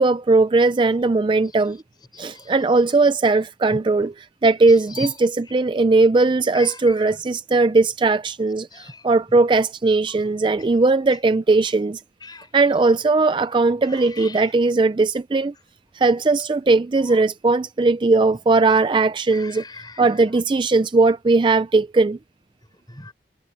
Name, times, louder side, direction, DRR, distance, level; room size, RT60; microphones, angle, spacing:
voice 1, 0.0-1.8 2.2-4.1 4.4-12.0 12.5-15.5 15.9-19.6 20.0-22.2, right 3 dB, 25° right, 0.4 m, -18 dB
voice 2, 2.1-2.5 3.7-3.8 4.9-5.1 6.5-7.1 8.7-9.1 10.6-10.7 12.2-12.5 13.9-14.6 19.3-20.2 22.9-23.1, left 2 dB, 25° left, 5.8 m, -38 dB
head